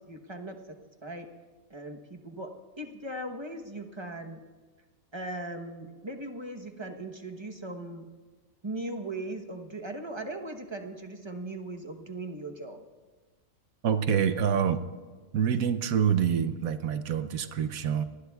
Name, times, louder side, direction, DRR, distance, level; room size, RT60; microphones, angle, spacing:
voice 1, 0.1-0.8 1.0-1.3 1.7-2.5 2.8-4.4 5.1-8.1 8.6-12.8, right 2 dB, 20° right, 4 dB, 0.9 m, -38 dB
voice 2, 13.8-14.8 15.3-18.0, right 8 dB, 80° right, 10 dB, 1.2 m, -26 dB
26.0 x 19.5 x 2.4 m, 1.4 s
omnidirectional pair, 1.5 m